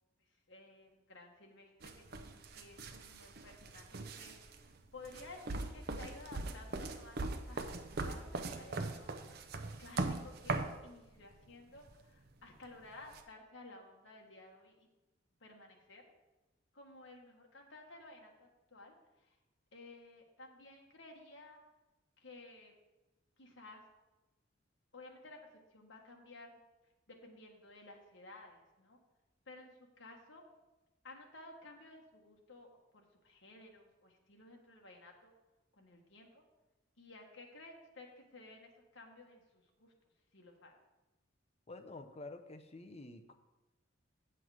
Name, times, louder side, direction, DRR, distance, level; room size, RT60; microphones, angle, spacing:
voice 1, 0.5-9.1 9.8-14.9 15.4-16.0 16.7-19.4 19.7-21.6 22.2-22.7 23.4-23.8 24.9-25.4 25.7-26.6 27.1-29.0 29.5-30.4 31.0-35.3 35.8-36.4 37.0-39.9 40.3-40.8, left 2 dB, 70° left, 1 dB, 1.5 m, -55 dB
sound 1, 1.8-10.8 11.8-11.9 13.1-13.2, right 3 dB, 55° right, 0.6 m, -40 dB
voice 2, 41.7-43.4, left 2 dB, 30° left, 7 dB, 0.6 m, -49 dB
7.8 x 7.6 x 4.9 m, 1.1 s
head